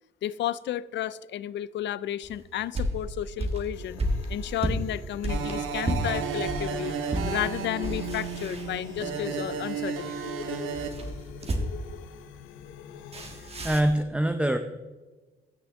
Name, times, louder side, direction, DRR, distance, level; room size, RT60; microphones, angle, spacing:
voice 1, 0.2-4.0 4.3-6.9 7.3-10.3, left 12 dB, 65° left, 18 dB, 0.5 m, -32 dB
sound 1, 2.2-6.7 7.1-7.3 7.7-9.2 10.7-11.9 13.1-14.0, right 1 dB, 30° right, 1.7 m, -32 dB
sound 2, 3.7-14.0, left 8 dB, 90° left, 0.8 m, -43 dB
sound 3, 5.2-10.9, right 7 dB, 80° right, 1.1 m, -33 dB
voice 2, 13.3-14.6, right 1 dB, 5° right, 7 dB, 0.6 m, -25 dB
16.0 x 6.2 x 3.6 m, 1.2 s
cardioid pair, 90°, 20 cm